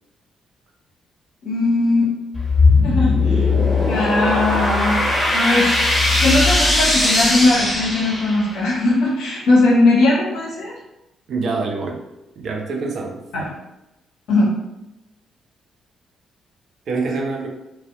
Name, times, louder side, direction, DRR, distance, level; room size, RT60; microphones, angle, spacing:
voice 1, 1.4-2.1 2.8-3.5 3.8-5.0 5.3-5.7 6.2-10.7 13.3-13.4 14.3-14.6, left 2 dB, 65° left, -5 dB, 0.7 m, -19 dB
sound 1, 2.3-8.6, left 2 dB, 30° left, 1.0 m, -18 dB
voice 2, 11.3-12.0 12.4-13.2 16.9-17.5, right 3 dB, 55° right, 1 dB, 0.4 m, -25 dB
2.5 x 2.0 x 2.5 m, 0.95 s
figure-of-eight pair, 40°, 0 cm